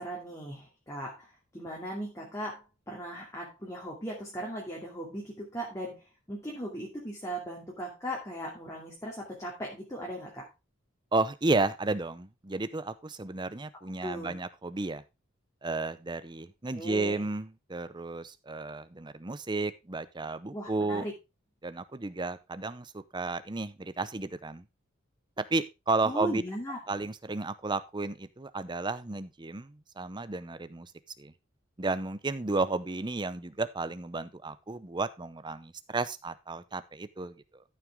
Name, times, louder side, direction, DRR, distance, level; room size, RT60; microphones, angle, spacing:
voice 1, 0.0-10.5 14.0-14.3 16.7-17.3 20.5-21.1 26.0-26.8, equal, 15° left, -3 dB, 2.4 m, -38 dB
voice 2, 11.1-15.0 15.6-21.0 21.6-24.6 25.4-26.4 26.9-30.9 31.2-31.3 31.8-37.6, right 3 dB, 20° right, 13 dB, 0.7 m, -33 dB
13.5 x 6.0 x 3.6 m, 0.25 s
head